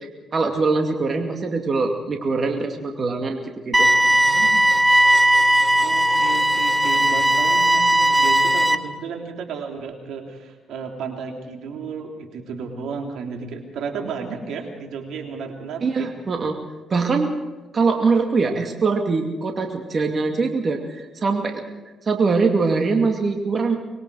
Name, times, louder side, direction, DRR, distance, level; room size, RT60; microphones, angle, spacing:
voice 1, 0.3-3.9 15.8-16.6 16.9-17.4 17.7-21.6 22.1-23.8, right 4 dB, 40° right, 3 dB, 2.4 m, -22 dB
sound 1, 3.7-8.8, right 1 dB, 20° right, 1.3 m, -17 dB
voice 2, 4.0-4.5 5.8-16.1, right 5 dB, 80° right, 2 dB, 3.4 m, -33 dB
25.5 x 21.5 x 4.9 m, 1.2 s
cardioid pair, 90°, 0 cm